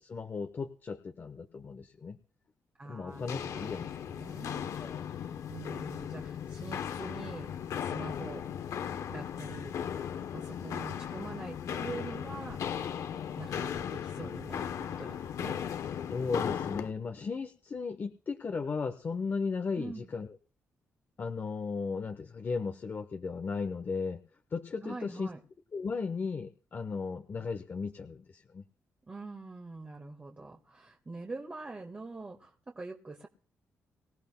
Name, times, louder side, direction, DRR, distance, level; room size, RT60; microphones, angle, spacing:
voice 1, 0.0-2.2 2.8-3.9 4.8-5.1 16.1-20.3 21.2-24.2 24.5-25.3 25.7-28.6, left 4 dB, 40° left, 7 dB, 0.9 m, -36 dB
voice 2, 2.8-4.7 5.0-5.2 5.5-7.5 7.8-8.5 9.1-9.8 10.3-13.0 13.4-15.6 19.7-20.1 24.8-25.4 29.1-33.3, right 3 dB, 25° right, 2 dB, 1.6 m, -44 dB
Walk footsteps, 3.1-16.9, left 8 dB, 75° left, 0.9 m, -37 dB
24.5 x 15.5 x 2.2 m, 0.40 s
cardioid pair, 105°, 5 cm